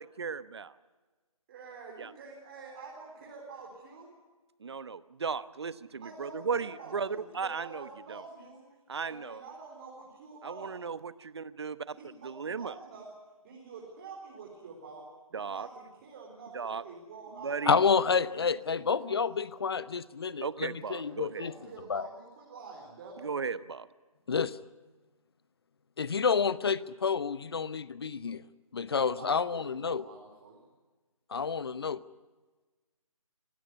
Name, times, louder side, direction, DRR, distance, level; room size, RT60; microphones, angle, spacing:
voice 1, 0.0-0.7 2.0-2.1 4.6-8.2 8.9-9.4 10.4-12.0 12.2-12.7 15.3-15.7 16.5-16.8 17.4-17.8 20.4-21.5 23.2-23.9, right 5 dB, 50° right, 15 dB, 1.0 m, -36 dB
voice 2, 1.5-4.2 6.0-8.6 9.0-10.8 11.8-13.1 13.4-19.2 20.7-23.3 29.1-30.7, right 4 dB, 25° right, -3 dB, 4.1 m, -48 dB
voice 3, 17.7-21.5 21.9-22.1 24.3-24.6 26.0-28.4 28.7-30.0 31.3-32.0, left 5 dB, 45° left, 17 dB, 0.9 m, -29 dB
26.0 x 16.5 x 9.5 m, 1.3 s
figure-of-eight pair, 155°, 18 cm